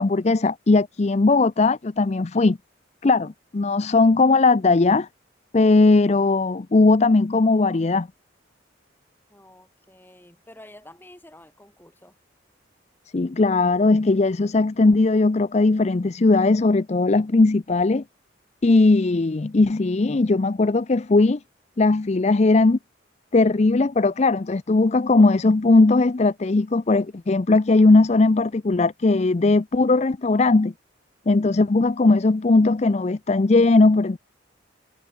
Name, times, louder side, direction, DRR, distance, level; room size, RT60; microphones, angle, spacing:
voice 1, 0.0-2.6 3.0-5.1 5.5-8.1 13.1-18.0 18.6-21.4 21.8-22.8 23.3-30.7 31.3-34.2, left 3 dB, 35° left, 0.5 m, -18 dB
voice 2, 9.3-12.2, left 1 dB, 10° left, 7.1 m, -49 dB
head